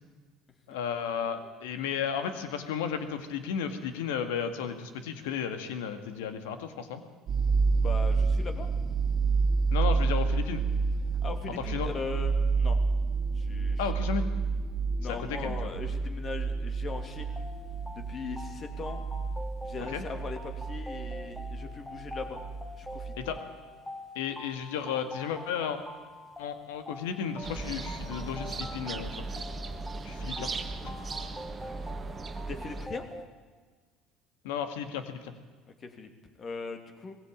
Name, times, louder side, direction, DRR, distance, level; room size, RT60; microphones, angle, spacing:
voice 1, 0.7-7.0 9.7-10.6 11.6-11.9 13.8-14.3 15.1-15.6 19.9-20.0 23.2-23.4 24.2-25.8 26.4-29.3 30.0-30.5 34.4-35.3, left 7 dB, 85° left, 8 dB, 2.0 m, -33 dB
sound 1, 7.3-23.4, right 4 dB, 50° right, 2.0 m, -29 dB
voice 2, 7.8-8.7 11.2-12.8 13.3-13.9 15.0-17.5 18.1-19.0 19.6-22.4 22.7-23.1 30.3-30.5 32.5-33.0 35.8-36.1 36.4-37.2, left 4 dB, 40° left, 6 dB, 2.9 m, -39 dB
sound 2, 16.9-33.3, left 1 dB, 5° left, 2.4 m, -45 dB
sound 3, 27.4-32.9, right 3 dB, 30° right, 1.6 m, -37 dB
20.0 x 16.0 x 8.8 m, 1.4 s
supercardioid pair, 85°, 0 cm